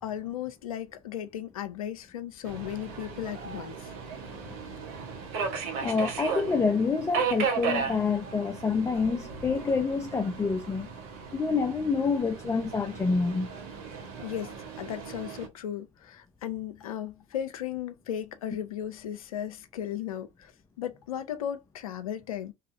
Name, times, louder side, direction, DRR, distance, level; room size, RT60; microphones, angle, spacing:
voice 1, 0.0-3.9 14.2-20.5 20.8-22.5, left 10 dB, 85° left, 0.4 m, -36 dB
Subway metro underground, 2.4-15.5, right 6 dB, 60° right, 1.0 m, -36 dB
voice 2, 5.8-10.9 11.3-13.5, left 4 dB, 15° left, 0.4 m, -27 dB
2.7 x 2.3 x 2.6 m
hypercardioid pair, 65°, 18 cm